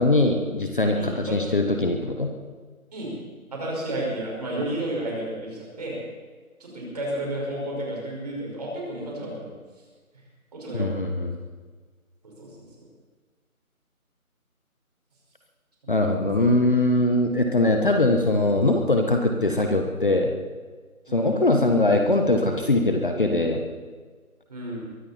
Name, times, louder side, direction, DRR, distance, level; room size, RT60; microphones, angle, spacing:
voice 1, 0.0-2.3 10.7-11.3 15.9-20.3 21.1-23.6, left 2 dB, 35° left, 3 dB, 1.3 m, -21 dB
voice 2, 0.9-1.4 2.9-3.1 3.5-6.0 6.6-9.5 10.5-11.0 12.2-12.7 15.8-16.5 21.1-21.4 24.5-24.9, right 1 dB, 30° right, -3 dB, 5.4 m, -32 dB
22.5 x 14.5 x 4.4 m, 1.5 s
figure-of-eight pair, 170°, 43 cm